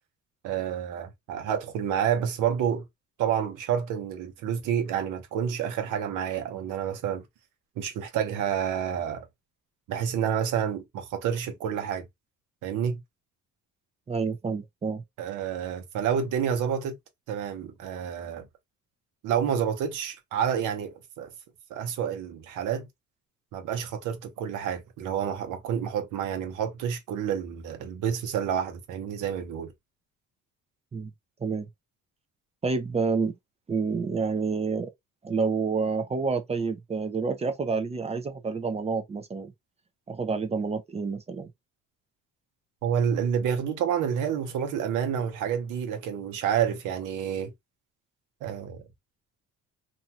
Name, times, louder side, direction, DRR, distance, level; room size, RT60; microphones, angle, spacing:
voice 1, 0.4-2.8 3.2-7.2 7.8-9.2 9.9-12.1 12.6-13.0 15.2-17.0 17.3-18.5 19.2-21.3 21.7-22.9 23.5-29.7 42.8-47.5 48.4-48.8, right 8 dB, 85° right, 0.9 m, -29 dB
voice 2, 14.1-15.0 30.9-31.1 31.4-31.7 32.6-33.4 33.7-34.9 35.2-39.5 40.1-41.5, right 4 dB, 20° right, 0.4 m, -28 dB
2.6 x 2.2 x 2.8 m
cardioid pair, 135°, 31 cm